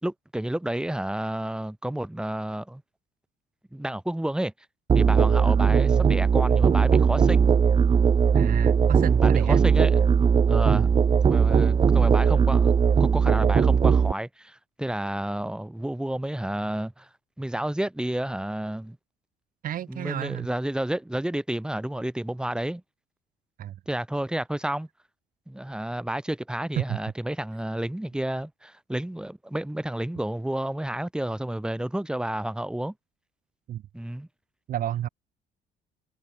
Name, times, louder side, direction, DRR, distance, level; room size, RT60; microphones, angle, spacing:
voice 1, 0.0-2.8 3.7-4.5 4.9-7.5 9.2-10.0 10.5-10.9 11.2-17.1 17.4-19.0 19.9-22.8 23.9-24.9 25.5-32.9 33.9-34.3, right 1 dB, 5° right, 3.1 m, -30 dB
Musical instrument, 4.9-14.1, right 6 dB, 30° right, 0.8 m, -19 dB
voice 2, 5.6-6.1 8.3-9.6 10.7-10.9 19.6-20.5 23.6-23.8 26.8-27.0 33.7-33.8 34.7-35.1, right 11 dB, 55° right, 1.1 m, -31 dB
cardioid pair, 110°, 17 cm